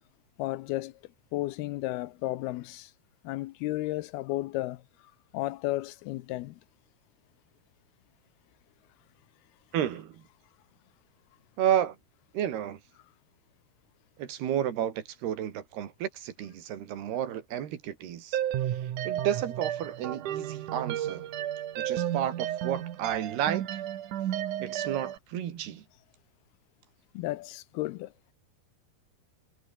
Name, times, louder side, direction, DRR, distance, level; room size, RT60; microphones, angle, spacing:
voice 1, 0.4-1.0 1.3-2.9 3.2-4.8 5.3-6.6 27.1-28.1, left 17 dB, 80° left, 2.6 m, -33 dB
voice 2, 9.7-10.2 11.6-12.0 12.3-12.8 14.2-18.4 18.7-21.3 21.8-23.8 24.6-25.9, right 10 dB, 75° right, 4.1 m, -32 dB
sound 1, 18.3-25.2, right 11 dB, 60° right, 2.6 m, -32 dB
omnidirectional pair, 4.6 m